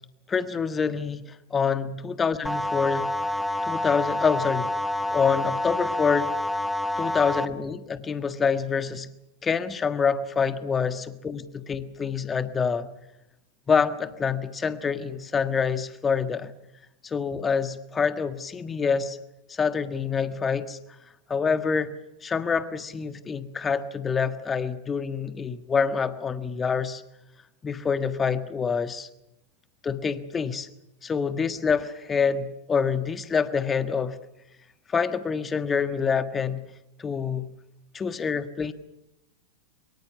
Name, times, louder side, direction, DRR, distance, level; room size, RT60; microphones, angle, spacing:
voice 1, 0.3-1.2 1.5-3.1 3.6-4.7 5.1-6.3 7.0-9.1 9.4-12.9 13.7-16.5 17.0-19.2 19.5-20.8 21.3-21.9 22.2-27.0 27.6-29.1 29.8-30.7 31.0-34.2 34.9-36.7 37.0-37.5 37.9-38.7, left 6 dB, 20° left, 12 dB, 1.5 m, -26 dB
sound 1, 2.4-7.4, left 1 dB, ahead, 1.3 m, -28 dB
24.0 x 23.0 x 7.1 m, 0.88 s
figure-of-eight pair, 90°, 0 cm